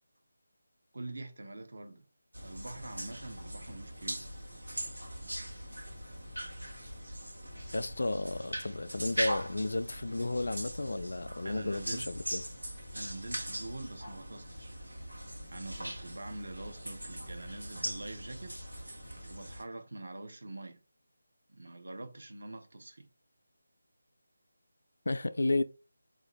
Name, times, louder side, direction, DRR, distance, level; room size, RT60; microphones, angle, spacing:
voice 1, 0.9-2.0 2.4-4.2 11.4-12.1 12.9-14.7 15.5-18.5 19.3-20.8 21.5-23.1, right 2 dB, 60° right, 0.7 m, -44 dB
sound 1, 2.3-19.6, right 1 dB, 85° right, 1.1 m, -41 dB
voice 2, 7.7-12.4 25.1-25.6, left 2 dB, 60° left, 0.3 m, -33 dB
4.2 x 2.5 x 2.9 m
figure-of-eight pair, 155°, 0 cm